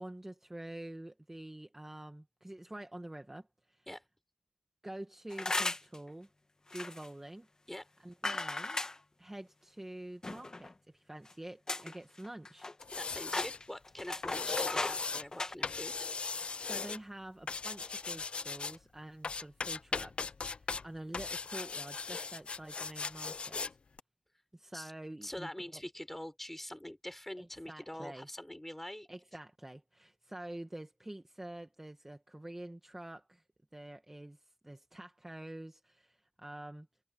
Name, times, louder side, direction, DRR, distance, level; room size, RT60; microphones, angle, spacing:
voice 1, 0.0-3.9 4.8-6.3 6.7-7.5 8.0-8.8 9.2-12.7 16.6-23.6 24.5-25.8 27.4-28.3 29.1-33.4 33.7-36.9, right 1 dB, 15° right, 1.4 m, -47 dB
sound 1, 5.3-6.0 6.7-7.1 8.2-9.0 10.2-10.7 11.3-11.4 11.7-12.0 12.2-13.0 13.3-15.0 15.3-15.5, left 2 dB, 30° left, 1.3 m, -36 dB
sound 2, 12.8-13.6 14.2-15.3 15.6-17.0 17.5-18.8 19.2-20.8 21.1-23.7 24.0-24.1, left 4 dB, 55° left, 0.5 m, -38 dB
voice 2, 12.9-16.1 24.7-24.9 25.2-29.1, left 1 dB, 10° left, 3.9 m, -44 dB
wide cardioid pair, 95°, 2 cm